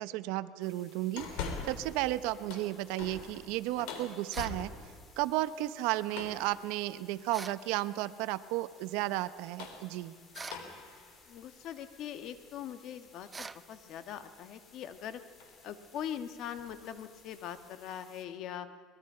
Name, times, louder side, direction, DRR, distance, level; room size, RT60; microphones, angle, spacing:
voice 1, 0.0-4.7 5.2-10.1, right 16 dB, 75° right, 15 dB, 0.8 m, -33 dB
sound 1, 0.6-18.3, left 4 dB, 30° left, 3.0 m, -61 dB
sound 2, 1.2-2.0 2.3-5.0 6.1-6.5 7.6-8.0 9.3-12.7 13.2-13.3 14.8-15.1 15.4-15.6 16.0-16.2 16.5-17.6, left 5 dB, 80° left, 3.6 m, -44 dB
sound 3, 4.3-4.6 7.3-7.6 10.3-10.7 13.3-13.6, right 4 dB, 15° right, 0.5 m, -43 dB
voice 2, 11.3-15.2 15.6-18.7, left 9 dB, 55° left, 10 dB, 1.5 m, -42 dB
23.5 x 21.0 x 5.7 m, 2.3 s
cardioid pair, 135°, 0 cm